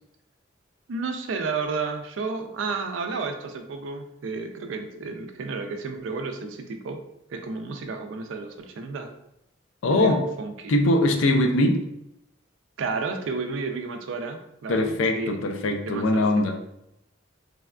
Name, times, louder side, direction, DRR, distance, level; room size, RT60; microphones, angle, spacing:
voice 1, 0.9-7.0 7.3-9.1 9.9-10.7 12.8-15.4 15.9-16.5, right 4 dB, 75° right, 5 dB, 0.4 m, -32 dB
voice 2, 9.8-10.3 10.7-11.8 14.7-16.6, left 1 dB, 85° left, 4 dB, 0.4 m, -21 dB
3.3 x 2.2 x 2.3 m, 0.81 s
head